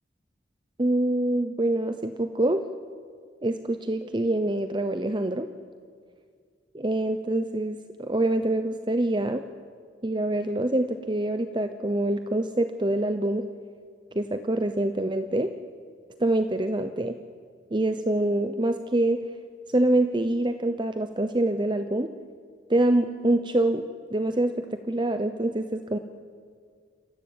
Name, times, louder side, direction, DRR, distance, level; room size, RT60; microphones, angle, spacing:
voice 1, 0.8-2.6 3.4-5.5 6.7-9.4 10.0-13.5 14.1-15.5 16.2-17.2 17.7-19.2 19.7-22.1 22.7-23.8 24.1-26.0, right 1 dB, 25° right, 8 dB, 0.8 m, -25 dB
27.0 x 15.5 x 9.2 m, 2.1 s
head